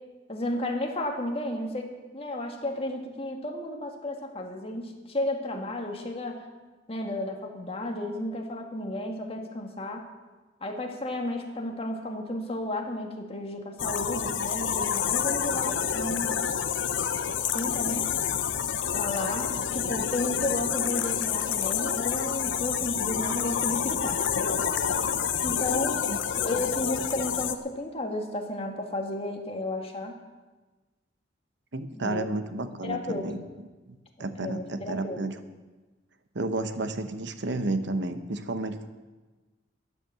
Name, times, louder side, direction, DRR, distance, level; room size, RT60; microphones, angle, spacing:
voice 1, 0.3-6.4 6.9-10.0 10.6-16.4 17.5-18.1 18.9-24.2 25.4-26.1 26.4-30.2 31.9-32.3 32.8-33.3 34.4-35.2, left 1 dB, 30° left, 2 dB, 1.9 m, -33 dB
sound 1, 13.8-27.5, left 8 dB, 75° left, 0.8 m, -28 dB
voice 2, 31.7-33.4 33.9-35.3 36.3-38.9, right 2 dB, 65° right, 10 dB, 1.0 m, -31 dB
13.5 x 9.8 x 7.5 m, 1.2 s
head